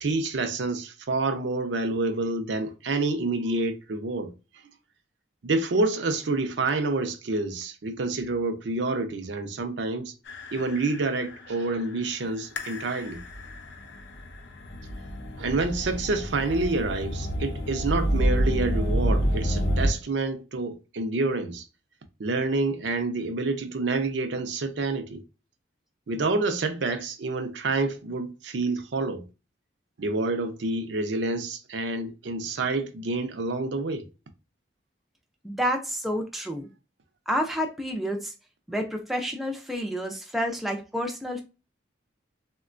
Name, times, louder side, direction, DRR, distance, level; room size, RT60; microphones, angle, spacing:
voice 1, 0.0-4.3 5.4-10.1 10.5-13.2 15.4-21.7 22.2-25.2 26.1-29.2 30.0-34.0, right 3 dB, 70° right, 0.5 m, -28 dB
sound 1, 10.3-19.9, equal, 65° left, 0.5 m, -29 dB
voice 2, 35.4-36.7 37.3-38.3 38.7-41.4, equal, ahead, 0.3 m, -29 dB
3.7 x 2.2 x 2.4 m
head